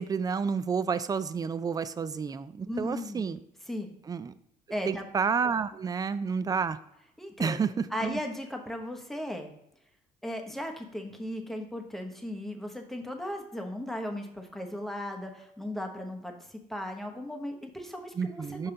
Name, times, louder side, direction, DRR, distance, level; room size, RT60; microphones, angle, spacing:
voice 1, 0.0-3.4 4.1-4.3 4.9-6.8 7.4-8.2 18.2-18.7, right 6 dB, 20° right, 14 dB, 0.3 m, -30 dB
voice 2, 2.7-3.2 3.7-4.0 4.7-5.1 7.2-7.6 7.9-9.5 10.2-18.7, left 1 dB, ahead, 3 dB, 0.9 m, -36 dB
5.6 x 5.4 x 3.8 m, 0.82 s
cardioid pair, 110°, 17 cm